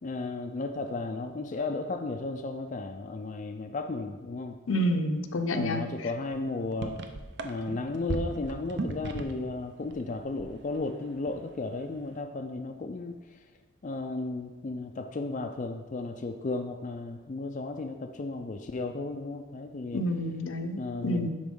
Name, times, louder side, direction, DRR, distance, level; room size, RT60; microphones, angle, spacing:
voice 1, 0.0-4.6 5.5-7.0 7.4-13.4 13.8-20.0 20.8-21.3, left 3 dB, 35° left, 5 dB, 0.3 m, -34 dB
voice 2, 4.7-5.8 19.9-21.3, equal, 80° left, 6 dB, 0.7 m, -29 dB
sound 1, 6.3-6.4 6.6-9.5 9.8-10.9 11.2-11.5, right 3 dB, 55° right, 0.6 m, -36 dB
11.0 x 4.3 x 3.7 m, 1.3 s
head